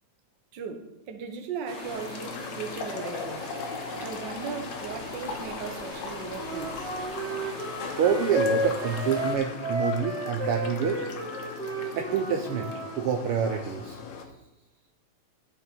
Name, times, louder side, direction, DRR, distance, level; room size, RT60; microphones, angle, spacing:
voice 1, 0.5-3.5 4.0-6.9, right 6 dB, 55° right, 6 dB, 1.3 m, -37 dB
sound 1, 1.7-9.3, left 1 dB, 30° left, 1.5 m, -41 dB
sound 2, 1.9-14.2, left 4 dB, 75° left, 2.4 m, -39 dB
Wind instrument woodwind instrument, 6.4-12.9, equal, 15° right, 2.9 m, -32 dB
voice 2, 8.0-11.1 12.0-12.7 12.9-14.0, right 7 dB, 75° right, 3 dB, 1.3 m, -27 dB
13.0 x 6.9 x 4.4 m, 0.93 s
omnidirectional pair, 3.3 m